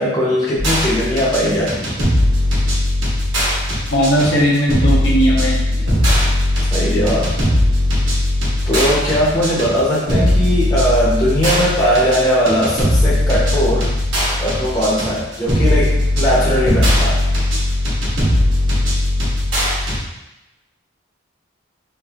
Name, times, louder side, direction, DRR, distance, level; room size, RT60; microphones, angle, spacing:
voice 1, 0.0-2.0 6.7-7.3 8.7-13.9 14.4-17.2, equal, 20° left, -7 dB, 0.6 m, -18 dB
sound 1, 0.6-20.0, left 1 dB, 75° right, 1.1 m, -18 dB
voice 2, 3.9-5.6, equal, 80° left, -4 dB, 0.8 m, -16 dB
3.3 x 2.5 x 2.3 m, 0.96 s
head